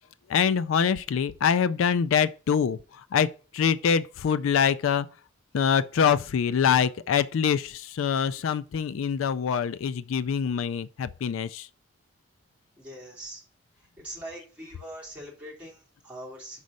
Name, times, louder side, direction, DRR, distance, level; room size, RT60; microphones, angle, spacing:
voice 1, 0.3-5.1 5.5-11.7, left 7 dB, 80° left, 0.4 m, -25 dB
voice 2, 12.8-13.4 14.0-16.6, right 1 dB, 5° right, 2.8 m, -42 dB
5.5 x 5.2 x 6.2 m
head